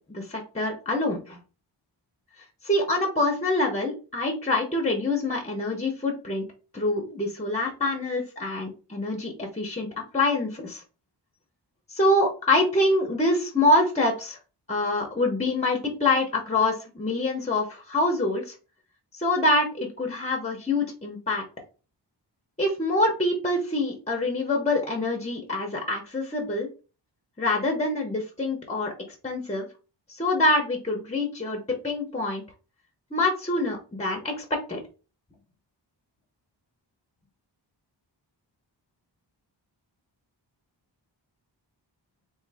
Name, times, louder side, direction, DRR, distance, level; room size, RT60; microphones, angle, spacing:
voice 1, 0.1-1.4 2.6-6.4 6.7-9.9 10.1-10.8 11.9-14.4 14.7-18.5 19.2-21.4 22.6-26.7 27.4-28.9 29.2-29.7 30.1-32.4 33.1-34.8, left 2 dB, 15° left, 1 dB, 0.9 m, -25 dB
3.7 x 2.6 x 3.4 m, 0.33 s
wide cardioid pair, 110°, 44 cm